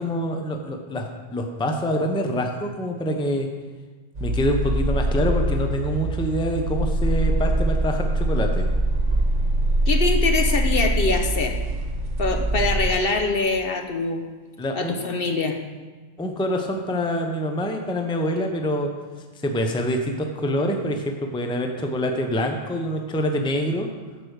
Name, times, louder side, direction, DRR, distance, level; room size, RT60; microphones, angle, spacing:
voice 1, 0.0-3.5 4.2-8.7 14.6-15.0 16.2-18.9 19.4-23.9, equal, 5° left, 3 dB, 0.6 m, -25 dB
sound 1, 4.1-12.9, right 1 dB, 80° right, 1.6 m, -23 dB
voice 2, 9.9-11.6 12.2-14.2 14.7-15.6, left 3 dB, 55° left, 5 dB, 0.9 m, -23 dB
9.1 x 5.1 x 6.5 m, 1.3 s
omnidirectional pair, 1.2 m